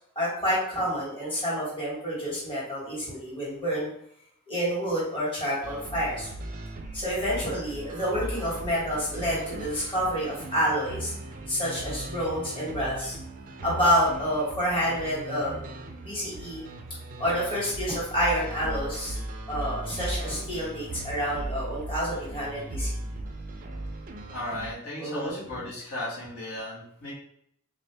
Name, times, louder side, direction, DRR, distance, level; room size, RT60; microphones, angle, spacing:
voice 1, 0.1-3.9 4.5-6.3 6.9-11.1 11.5-13.2 13.6-15.5 16.0-16.6 17.2-19.2 19.5-22.9 25.0-25.6, equal, 25° left, -7 dB, 1.4 m, -28 dB
sound 1, 5.6-24.7, right 1 dB, 40° right, 0.4 m, -38 dB
voice 2, 24.3-27.1, left 1 dB, 80° left, -7 dB, 1.5 m, -35 dB
3.6 x 2.6 x 3.3 m, 0.71 s
head